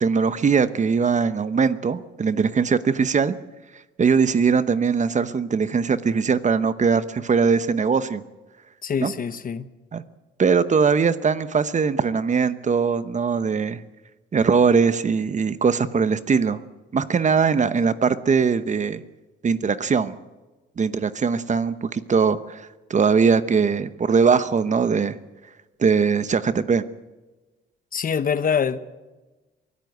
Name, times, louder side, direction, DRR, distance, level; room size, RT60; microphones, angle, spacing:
voice 1, 0.0-3.3 4.0-8.2 9.0-9.1 9.9-10.0 10.4-13.8 14.3-16.6 16.9-19.0 19.4-20.2 20.8-25.2 25.8-26.8, right 5 dB, 35° right, 13 dB, 1.0 m, -21 dB
voice 2, 8.8-9.6 27.9-28.8, left 6 dB, 45° left, 13 dB, 1.1 m, -24 dB
23.5 x 14.0 x 8.0 m, 1.2 s
cardioid pair, 90°, 20 cm